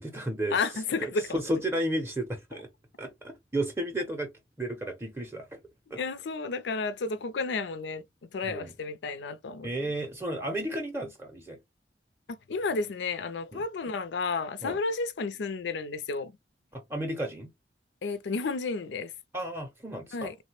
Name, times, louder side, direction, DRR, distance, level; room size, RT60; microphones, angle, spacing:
voice 1, 0.0-0.6 1.0-2.7 3.0-4.3 4.6-5.6 5.9-6.0 8.5-8.7 9.6-11.6 13.5-13.6 14.6-14.8 16.7-17.5 19.3-20.3, right 1 dB, 15° right, 0.5 m, -33 dB
voice 2, 0.5-1.4 5.9-8.0 8.3-9.7 12.3-16.4 18.0-19.1 20.1-20.4, left 4 dB, 85° left, 0.4 m, -32 dB
3.2 x 2.1 x 2.9 m
head